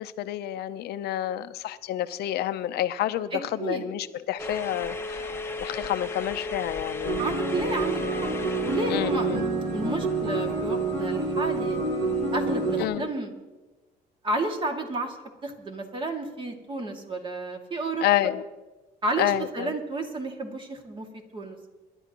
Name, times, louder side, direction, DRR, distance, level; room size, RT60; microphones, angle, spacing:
voice 1, 0.0-5.3 5.6-7.2 8.9-9.4 12.8-13.1 18.0-18.4 19.2-19.7, left 13 dB, 75° left, 12 dB, 0.7 m, -29 dB
voice 2, 3.3-3.8 7.2-8.2 8.6-11.8 12.3-13.3 14.2-15.2 15.4-18.0 19.0-21.1 21.3-21.6, right 2 dB, 30° right, 3 dB, 2.3 m, -31 dB
sound 1, 4.4-9.4, left 2 dB, 15° left, 1.0 m, -35 dB
sound 2, 7.0-12.8, right 3 dB, 90° right, 3.3 m, -28 dB
26.0 x 11.5 x 3.0 m, 1.2 s
cardioid pair, 110°, 17 cm